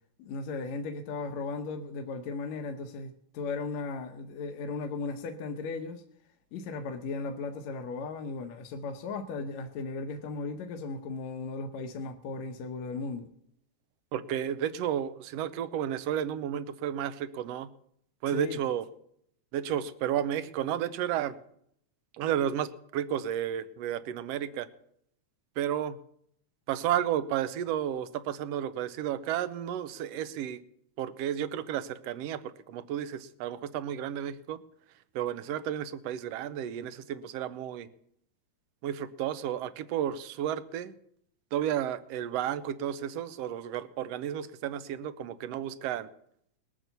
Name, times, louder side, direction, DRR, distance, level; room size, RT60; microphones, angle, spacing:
voice 1, 0.2-6.0 6.5-13.3 18.3-18.6, left 4 dB, 75° left, 2.2 m, -36 dB
voice 2, 14.1-17.7 18.2-18.9 19.5-21.4 22.2-24.7 25.6-26.0 26.7-30.6 31.0-34.6 35.1-37.9 38.8-41.0 41.5-46.1, right 10 dB, 70° right, 1.7 m, -32 dB
20.0 x 9.0 x 6.8 m
omnidirectional pair, 3.3 m